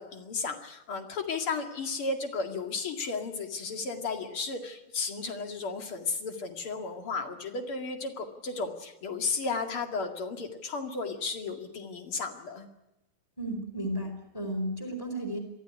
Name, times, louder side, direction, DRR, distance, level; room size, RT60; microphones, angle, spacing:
voice 1, 0.0-12.7, left 4 dB, 75° left, 5 dB, 3.1 m, -34 dB
voice 2, 13.4-15.4, right 1 dB, 10° left, 4 dB, 4.3 m, -33 dB
23.0 x 15.0 x 10.0 m, 0.93 s
omnidirectional pair, 2.4 m